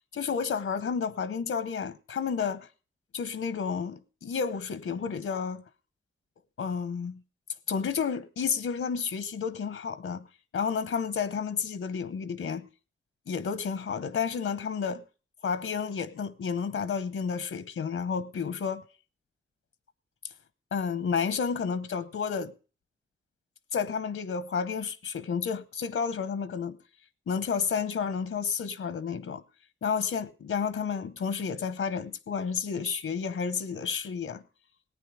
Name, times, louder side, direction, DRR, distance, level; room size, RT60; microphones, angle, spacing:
voice 1, 0.1-2.7 3.1-5.6 6.6-7.2 7.7-10.2 10.5-12.7 13.3-15.1 15.4-18.9 20.7-22.5 23.7-26.8 27.3-29.4 29.8-34.4, left 6 dB, 85° left, 0.9 m, -31 dB
18.0 x 9.4 x 4.9 m
wide cardioid pair, 155°, 21 cm